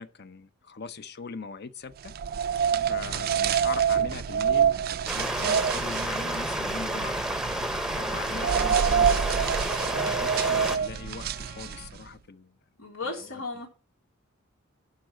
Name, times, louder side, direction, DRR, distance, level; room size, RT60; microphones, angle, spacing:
voice 1, 0.0-2.2 2.9-4.8 5.1-7.2 7.9-9.3 9.8-12.6, left 4 dB, 55° left, 0.8 m, -40 dB
sound 1, 2.0-12.0, right 7 dB, 50° right, 0.4 m, -27 dB
Stream, 5.1-10.8, right 1 dB, 5° right, 0.7 m, -30 dB
Trumpet, 7.7-11.9, left 2 dB, 25° left, 1.4 m, -49 dB
voice 2, 12.8-13.7, left 3 dB, 90° left, 3.7 m, -35 dB
11.5 x 4.0 x 7.3 m
head